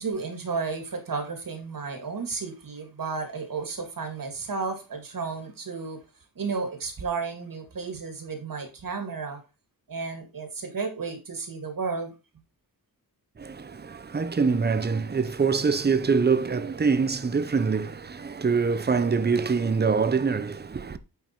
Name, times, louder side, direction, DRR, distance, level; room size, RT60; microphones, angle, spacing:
voice 1, 0.0-6.0 6.4-9.4 9.9-12.1, right 4 dB, 60° right, 2.2 m, -33 dB
voice 2, 13.4-21.0, right 5 dB, 25° right, 0.7 m, -24 dB
8.9 x 5.5 x 4.5 m
wide cardioid pair, 170°, 38 cm